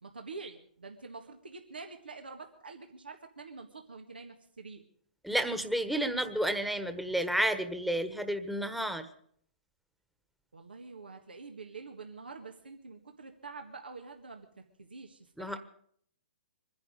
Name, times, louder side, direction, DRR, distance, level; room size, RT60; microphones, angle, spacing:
voice 1, 0.0-4.8 10.5-15.6, right 4 dB, 85° right, 4 dB, 1.7 m, -46 dB
voice 2, 5.2-9.1 15.4-15.6, right 1 dB, ahead, 8 dB, 1.3 m, -31 dB
24.0 x 10.5 x 5.1 m, 0.64 s
hypercardioid pair, 125°, 5 cm